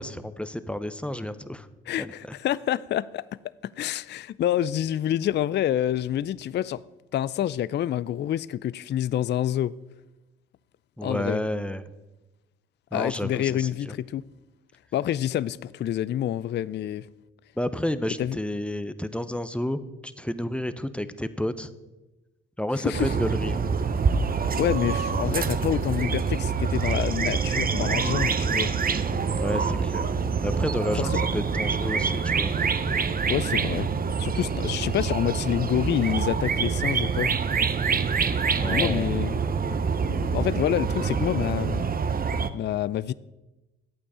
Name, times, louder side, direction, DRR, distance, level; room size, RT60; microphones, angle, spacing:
voice 1, 0.0-1.7 2.0-2.1 11.0-11.9 12.9-13.9 17.6-21.7 22.6-23.6 29.4-30.1 30.4-32.5 38.5-39.1, left 1 dB, 5° left, 0.7 m, -31 dB
voice 2, 1.9-6.8 7.1-9.7 11.0-11.4 12.9-14.2 14.9-17.1 18.2-18.4 22.8-23.1 24.5-28.7 31.0-31.1 33.3-33.9 34.2-37.3 38.7-39.4 40.0-41.8 42.5-43.1, left 11 dB, 35° left, 0.4 m, -27 dB
sound 1, 22.9-42.5, right 5 dB, 30° right, 0.8 m, -26 dB
11.5 x 8.5 x 4.9 m
hypercardioid pair, 60°, 30 cm